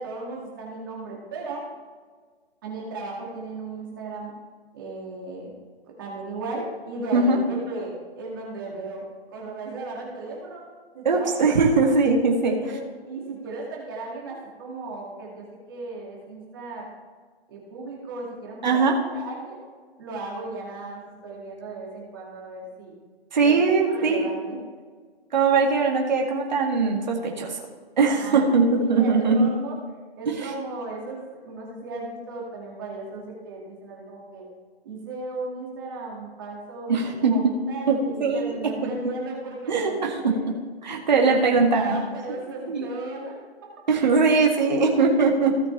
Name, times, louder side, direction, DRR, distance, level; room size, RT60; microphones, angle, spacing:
voice 1, 0.0-1.6 2.6-4.3 4.7-5.5 6.0-10.6 10.9-11.3 11.7-11.8 12.2-16.9 17.5-19.6 20.0-22.9 23.4-23.6 23.8-24.6 28.1-28.4 28.8-29.8 30.2-34.5 34.8-40.5 41.2-43.4, right 2 dB, 20° right, -3 dB, 2.2 m, -36 dB
voice 2, 11.0-12.7 18.6-19.0 23.3-24.3 25.3-27.6 28.0-29.5 30.3-30.5 36.9-37.5 37.9-38.9 39.7-40.4 40.8-42.0 42.7-42.9 43.9-45.7, right 4 dB, 45° right, 0 dB, 2.0 m, -21 dB
17.0 x 5.9 x 3.3 m, 1.5 s
hypercardioid pair, 180°, 31 cm